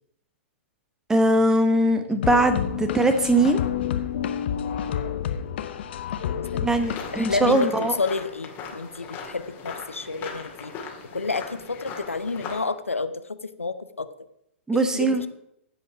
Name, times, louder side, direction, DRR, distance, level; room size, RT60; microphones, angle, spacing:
voice 1, 1.1-3.6 6.5-8.0 14.7-15.2, right 1 dB, 10° right, 8 dB, 1.1 m, -21 dB
sound 1, 2.2-7.6, left 9 dB, 55° left, 0.9 m, -29 dB
voice 2, 6.3-6.7 7.1-10.7 11.1-14.1 14.7-15.3, left 3 dB, 85° left, 11 dB, 0.7 m, -30 dB
sound 2, 6.7-12.6, left 6 dB, 30° left, 2.3 m, -39 dB
16.0 x 5.4 x 4.7 m, 0.78 s
figure-of-eight pair, 110°, 7 cm